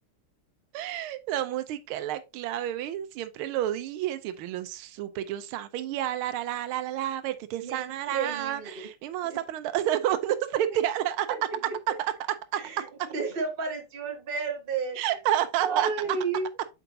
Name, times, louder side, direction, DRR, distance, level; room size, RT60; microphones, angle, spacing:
voice 1, 0.7-11.4 11.9-12.1 12.5-12.6 13.0-13.1 15.0-16.2, right 12 dB, 80° right, 1.5 m, -30 dB
voice 2, 7.6-8.7 9.2-9.4 12.6-15.0 15.6-16.5, right 5 dB, 30° right, 1.2 m, -32 dB
7.9 x 4.6 x 2.7 m
omnidirectional pair, 2.4 m